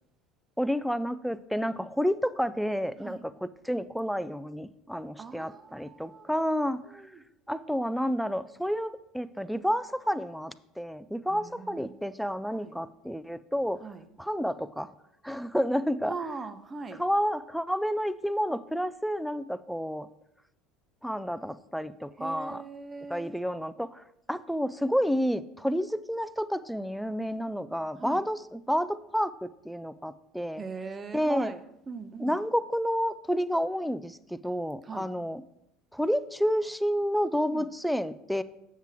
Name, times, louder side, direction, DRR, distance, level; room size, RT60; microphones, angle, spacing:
voice 1, 0.6-7.0 7.5-13.8 14.2-14.9 15.2-16.3 17.0-20.1 21.0-22.6 23.1-30.6 31.1-31.5 32.2-35.4 35.9-38.4, equal, ahead, 14 dB, 0.4 m, -30 dB
voice 2, 5.2-6.4 6.8-7.2 11.3-12.0 12.5-12.7 13.8-14.1 16.0-17.0 22.2-23.4 28.0-28.2 30.6-32.4 34.8-35.1 37.5-37.7, right 4 dB, 30° right, 10 dB, 0.8 m, -40 dB
7.4 x 7.3 x 3.6 m, 0.78 s
hypercardioid pair, 75°, 0 cm